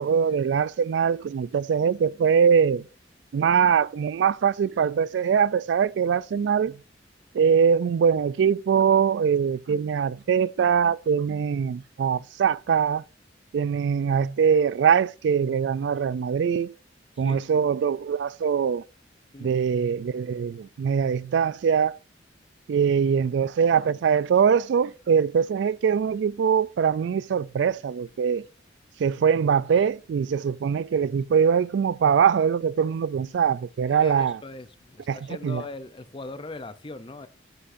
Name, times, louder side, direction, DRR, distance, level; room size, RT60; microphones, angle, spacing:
voice 1, 0.0-2.8 3.3-6.8 7.3-13.0 13.5-16.7 17.2-18.8 19.4-22.0 22.7-28.5 29.0-34.4 35.1-35.2 35.4-35.6, right 7 dB, 65° right, 0.3 m, -22 dB
voice 2, 17.2-17.6 19.3-19.6 33.9-37.3, left 2 dB, 25° left, 0.5 m, -40 dB
10.5 x 6.7 x 2.6 m
head